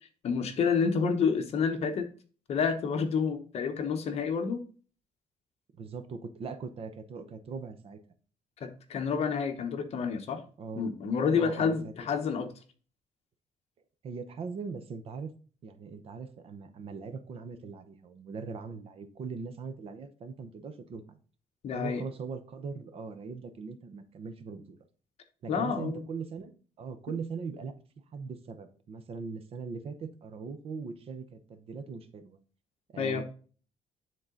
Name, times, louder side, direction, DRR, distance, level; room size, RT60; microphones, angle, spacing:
voice 1, 0.2-2.1 2.5-4.6 8.6-10.4 10.8-12.5 21.6-22.0 25.5-26.0 33.0-33.2, left 6 dB, 50° left, 7 dB, 1.0 m, -29 dB
voice 2, 5.7-8.0 10.6-10.9 11.3-11.9 14.0-15.3 15.6-21.2 21.7-24.8 25.4-27.7 28.1-32.4 32.9-33.2, right 5 dB, 45° right, 9 dB, 0.8 m, -40 dB
9.8 x 3.8 x 3.8 m, 0.39 s
cardioid pair, 170°, 14 cm